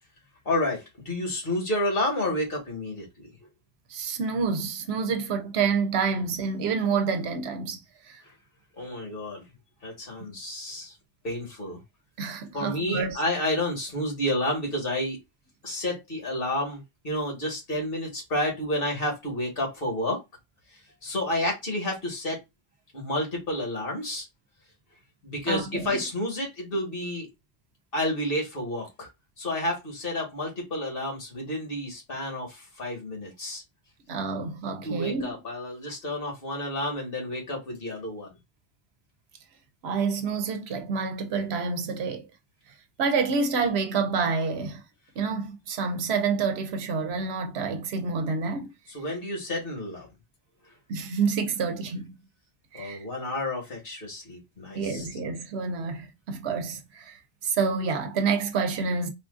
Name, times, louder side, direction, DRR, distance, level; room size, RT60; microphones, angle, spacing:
voice 1, 0.4-3.3 8.8-9.4 9.8-10.9 11.2-11.8 12.5-15.2 15.6-20.2 21.0-22.4 22.9-24.3 25.2-27.3 27.9-29.1 29.4-33.6 34.8-38.3 48.9-50.1 52.7-55.1, left 1 dB, 60° left, 1.7 m, -30 dB
voice 2, 3.9-7.8 8.1-8.2 10.2-10.3 12.2-13.2 25.5-26.0 34.1-35.3 39.8-42.3 43.0-44.8 45.2-48.7 50.9-52.2 52.7-53.0 54.7-59.1, right 5 dB, 90° right, 0.9 m, -28 dB
4.2 x 2.4 x 2.4 m
omnidirectional pair, 1.1 m